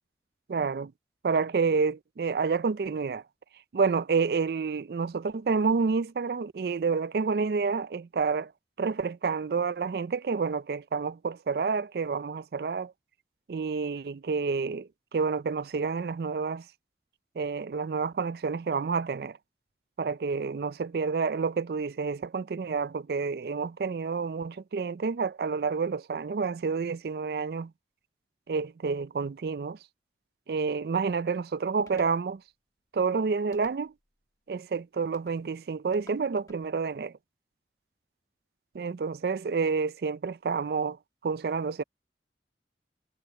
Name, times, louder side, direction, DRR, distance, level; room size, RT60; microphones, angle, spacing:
voice 1, 0.5-0.9 1.2-3.2 3.7-8.5 8.8-12.9 13.5-16.6 17.4-19.4 20.0-27.7 28.5-29.8 30.5-32.4 32.9-33.9 34.5-37.1 38.7-41.0 41.2-41.8, right 5 dB, 60° right, 0.4 m, -29 dB
sound 1, 31.9-32.2 33.5-34.1 35.1-35.4 35.9-36.6, left 2 dB, 20° left, 1.3 m, -55 dB
head